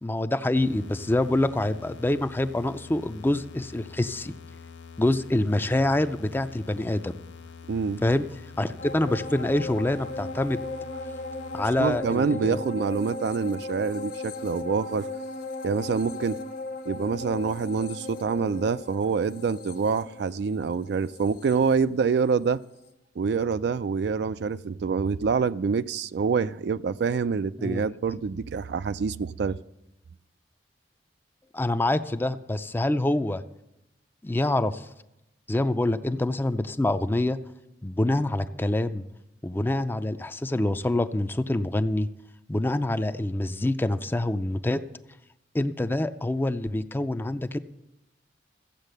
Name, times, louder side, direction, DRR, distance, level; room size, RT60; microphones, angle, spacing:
voice 1, 0.0-4.3 5.0-7.1 8.0-8.2 8.6-10.6 11.5-12.6 27.6-27.9 31.5-33.4 34.2-34.8 35.5-37.4 37.8-39.0 39.4-42.1 42.5-44.8 45.5-47.6, left 1 dB, 10° left, 11 dB, 0.4 m, -26 dB
sound 1, 0.6-12.0, left 5 dB, 85° left, 0.5 m, -46 dB
voice 2, 7.7-8.0 11.8-15.1 15.6-16.4 16.9-22.6 23.2-29.6, right 5 dB, 65° right, 14 dB, 0.4 m, -26 dB
sound 2, 8.8-22.5 22.9-23.0, left 2 dB, 50° left, 1.0 m, -37 dB
14.5 x 8.1 x 6.5 m, 0.90 s
head